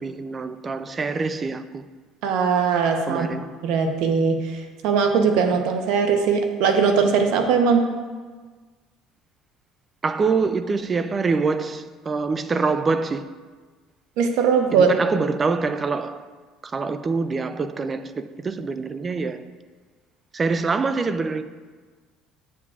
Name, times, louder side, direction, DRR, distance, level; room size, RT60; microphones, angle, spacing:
voice 1, 0.0-1.8 3.1-3.5 10.0-13.3 14.7-16.3 16.6-19.4 20.3-21.4, right 4 dB, 25° right, 0.4 m, -25 dB
voice 2, 2.2-3.3 3.6-7.8 14.2-14.9, right 5 dB, 75° right, 0.8 m, -20 dB
8.4 x 7.2 x 2.4 m
cardioid pair, 115°, 0 cm